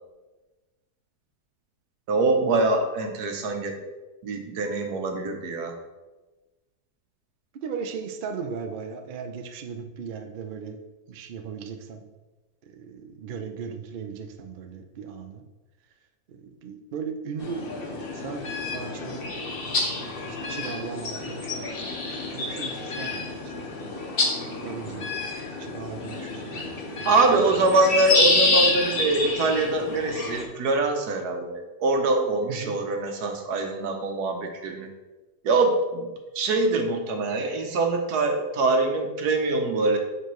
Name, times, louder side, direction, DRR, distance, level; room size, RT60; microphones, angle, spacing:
voice 1, 2.1-3.8 4.2-5.7 27.1-34.9 35.4-36.1 36.3-40.0, right 2 dB, 80° right, 4 dB, 1.4 m, -24 dB
voice 2, 7.5-10.8 11.1-12.0 12.6-15.4 16.3-17.7 18.1-19.3 20.2-21.6 22.3-23.7 24.6-25.1 25.6-27.8 32.5-32.8, right 6 dB, 65° right, 5 dB, 0.5 m, -37 dB
sound 1, 17.4-30.4, left 2 dB, 45° left, 1.0 m, -28 dB
6.8 x 4.9 x 3.1 m, 1.2 s
omnidirectional pair, 1.7 m